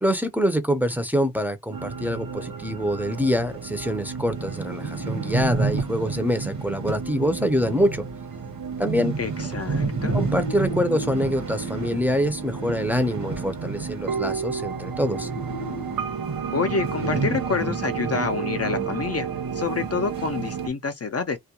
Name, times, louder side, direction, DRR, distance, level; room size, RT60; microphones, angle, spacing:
voice 1, 0.0-8.0 8.8-9.2 10.1-15.3, equal, 5° right, 0.5 m, -25 dB
sound 1, 1.7-20.7, right 6 dB, 80° right, 0.6 m, -33 dB
sound 2, 3.5-3.6 3.9-4.0 4.2-14.4 14.7-19.2 19.4-19.5 20.2-20.6, right 3 dB, 55° right, 0.9 m, -31 dB
voice 2, 9.2-10.2 16.5-19.3 19.5-21.4, left 5 dB, 45° left, 0.4 m, -27 dB
2.3 x 2.1 x 2.8 m
wide cardioid pair, 80°, 34 cm